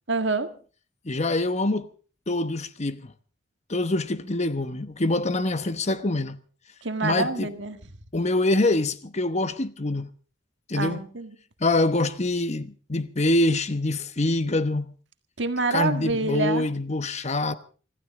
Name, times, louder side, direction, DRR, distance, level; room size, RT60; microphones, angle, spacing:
voice 1, 0.1-0.5 6.8-7.8 10.7-11.3 15.4-16.7, right 3 dB, 65° right, 1.7 m, -26 dB
voice 2, 1.0-1.9 2.3-3.1 3.7-6.4 7.0-7.5 8.1-10.1 10.7-11.0 11.6-14.9 15.7-17.5, left 2 dB, 35° left, 1.0 m, -25 dB
25.5 x 15.0 x 3.7 m
head